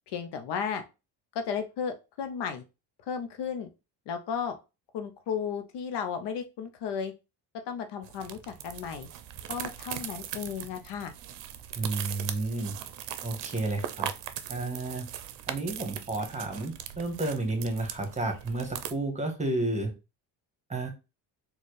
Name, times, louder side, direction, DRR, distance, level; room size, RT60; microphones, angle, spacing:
voice 1, 0.1-0.8 1.3-2.6 3.1-3.7 4.1-4.6 4.9-7.1 7.7-9.1 9.5-11.1, left 7 dB, 65° left, 7 dB, 0.6 m, -34 dB
sound 1, 8.0-18.9, right 11 dB, 70° right, 0.6 m, -39 dB
voice 2, 11.8-12.7 13.2-14.1 14.5-15.1 15.5-19.9 20.7-20.9, right 2 dB, 15° right, 4 dB, 1.3 m, -31 dB
4.1 x 2.3 x 3.2 m, 0.28 s
supercardioid pair, 75°, 45 cm